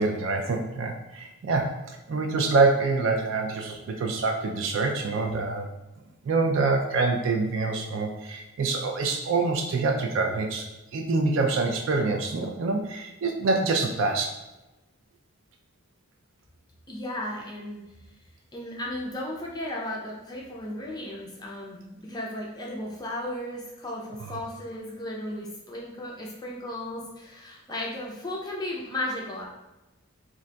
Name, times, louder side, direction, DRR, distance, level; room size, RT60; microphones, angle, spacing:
voice 1, 0.0-1.7 2.1-5.7 6.3-10.7 10.9-14.3, right 3 dB, 60° right, 2 dB, 0.3 m, -25 dB
voice 2, 16.9-17.8 18.5-29.4, left 1 dB, 20° left, -2 dB, 0.4 m, -35 dB
2.5 x 2.2 x 3.8 m, 1.0 s
head